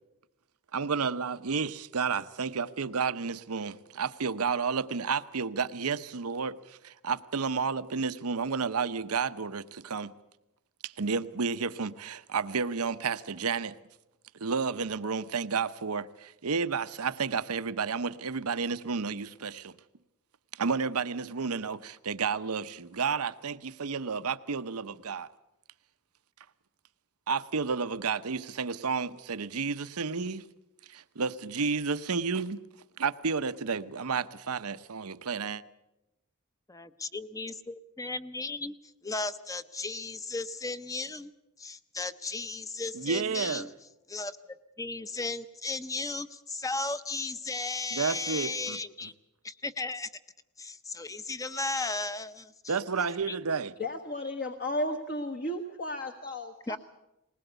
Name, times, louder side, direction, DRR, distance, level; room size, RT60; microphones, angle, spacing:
voice 1, 0.7-10.1 10.8-13.8 14.4-19.7 20.5-25.3 27.3-30.4 30.9-32.6 33.0-35.6 42.9-43.7 47.9-49.1 52.7-53.7, right 5 dB, 85° right, 0.8 m, -31 dB
voice 2, 36.7-38.7 39.0-41.3 41.6-43.7 44.1-44.4 44.8-49.1 49.4-50.1 50.6-52.5 53.3-53.4 56.7-56.8, left 3 dB, 15° left, 0.8 m, -35 dB
voice 3, 53.8-56.8, left 1 dB, 45° left, 1.3 m, -34 dB
20.5 x 19.5 x 8.1 m
head